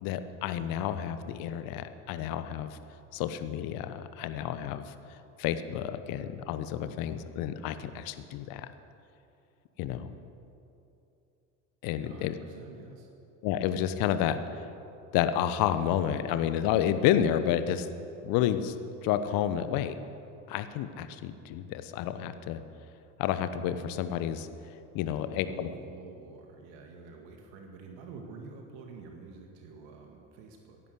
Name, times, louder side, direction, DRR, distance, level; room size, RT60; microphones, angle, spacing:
voice 1, 0.0-2.8 3.1-4.9 5.4-8.7 9.8-10.1 11.8-12.3 13.4-14.4 15.1-17.9 18.2-18.8 19.0-19.9 20.5-22.6 23.2-24.5 24.9-25.7, left 10 dB, 60° left, 11 dB, 1.1 m, -30 dB
voice 2, 12.0-13.1 25.4-30.8, right 4 dB, 65° right, 3 dB, 1.9 m, -48 dB
16.5 x 10.5 x 8.1 m, 2.8 s
hypercardioid pair, 60°, 39 cm